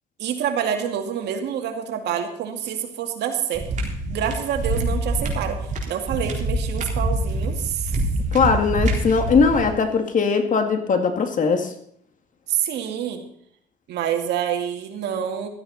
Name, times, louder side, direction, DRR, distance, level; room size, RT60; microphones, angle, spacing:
voice 1, 0.2-5.6 5.9-7.9 12.5-13.2 13.9-15.5, right 9 dB, 80° right, 5 dB, 2.2 m, -27 dB
sound 1, 3.5-9.7, right 1 dB, 45° right, 4.0 m, -25 dB
voice 2, 8.3-11.7, left 5 dB, 50° left, 6 dB, 2.3 m, -20 dB
15.5 x 13.0 x 4.2 m, 0.68 s
cardioid pair, 95°, 17 cm